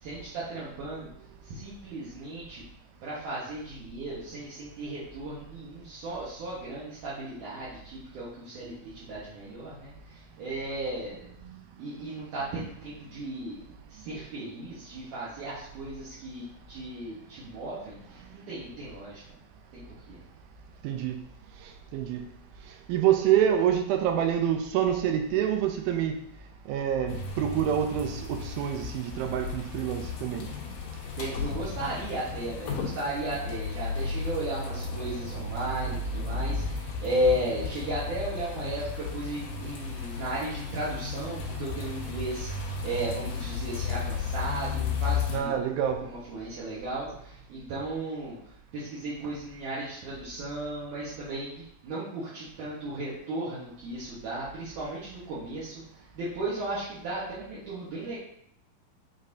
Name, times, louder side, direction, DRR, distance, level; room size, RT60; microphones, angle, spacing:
voice 1, 0.0-1.1 1.5-2.6 3.0-11.3 11.8-13.6 13.9-19.2 19.7-20.2 31.2-45.5 46.0-48.4 48.7-55.8 56.1-58.2, right 1 dB, 65° right, -9 dB, 2.6 m, -35 dB
voice 2, 20.8-21.2 21.6-22.2 22.7-26.2 26.7-30.5 45.3-46.0, right 10 dB, 90° right, 5 dB, 2.5 m, -27 dB
sound 1, 27.1-45.4, left 4 dB, 70° left, 2.4 m, -34 dB
8.6 x 4.1 x 2.7 m, 0.72 s
omnidirectional pair, 4.3 m